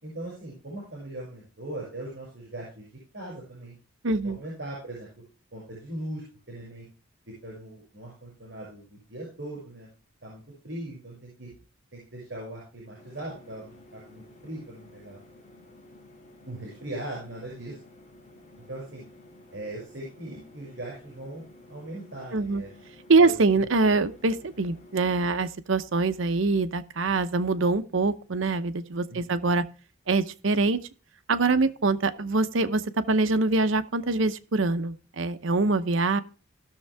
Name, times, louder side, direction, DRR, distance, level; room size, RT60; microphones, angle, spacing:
voice 1, 0.0-3.7 4.2-5.1 5.5-6.9 7.3-9.9 10.2-11.5 11.9-15.2 16.4-17.8 18.6-19.0 19.5-22.7 23.2-23.3 29.1-29.5, right 1 dB, 60° right, -4 dB, 6.3 m, -40 dB
voice 2, 4.0-4.4 22.3-22.6 23.1-29.6 30.1-30.8 31.3-36.2, right 3 dB, 75° right, 11 dB, 0.8 m, -24 dB
sound 1, 13.0-25.4, left 1 dB, 35° left, 2.3 m, -52 dB
17.0 x 6.6 x 3.4 m, 0.37 s
head